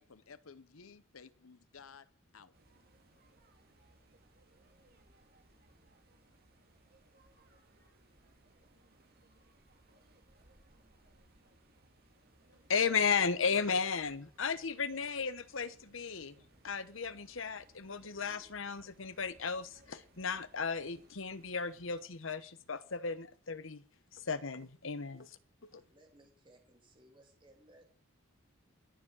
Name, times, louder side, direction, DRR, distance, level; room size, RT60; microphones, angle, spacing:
voice 1, 0.0-2.5, left 5 dB, 90° left, 0.9 m, -55 dB
sound 1, 2.5-22.0, right 1 dB, 45° right, 2.3 m, -65 dB
voice 2, 12.7-16.4 16.6-23.8 24.1-25.8, left 5 dB, 70° left, 1.1 m, -35 dB
voice 3, 25.7-27.9, right 1 dB, 25° right, 2.7 m, -62 dB
21.0 x 7.3 x 6.3 m
head